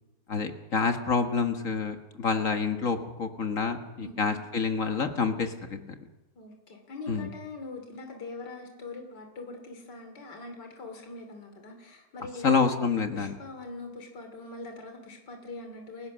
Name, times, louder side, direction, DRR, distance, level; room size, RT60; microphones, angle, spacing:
voice 1, 0.3-5.8 7.1-7.3 12.4-13.3, left 5 dB, 45° left, 6 dB, 1.9 m, -27 dB
voice 2, 4.0-4.4 6.4-12.8 13.1-16.1, left 3 dB, 70° left, 4 dB, 3.5 m, -42 dB
30.0 x 16.0 x 6.3 m, 1.0 s
omnidirectional pair, 1.9 m